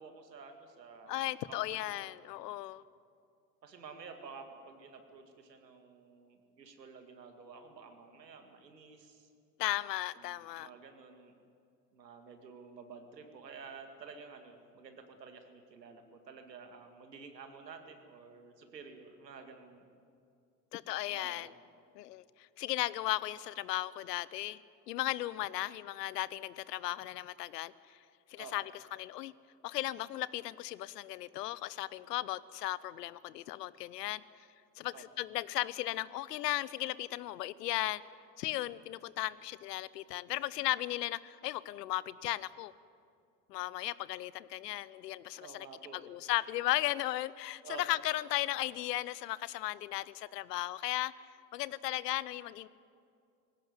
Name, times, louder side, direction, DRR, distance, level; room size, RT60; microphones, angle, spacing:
voice 1, 0.0-2.1 3.6-9.3 10.2-11.3 11.9-19.9 21.1-21.5 28.4-28.5 34.9-35.0 45.3-46.1 47.6-47.8, right 5 dB, 90° right, 6 dB, 2.2 m, -51 dB
voice 2, 1.1-2.8 9.6-10.7 20.7-21.5 21.9-24.6 24.9-28.0 28.3-29.3 29.6-34.2 34.8-38.0 38.4-42.7 43.5-45.7 45.9-52.7, left 16 dB, 75° left, 19 dB, 0.8 m, -36 dB
19.5 x 17.0 x 9.4 m, 2.4 s
hypercardioid pair, 75°, 48 cm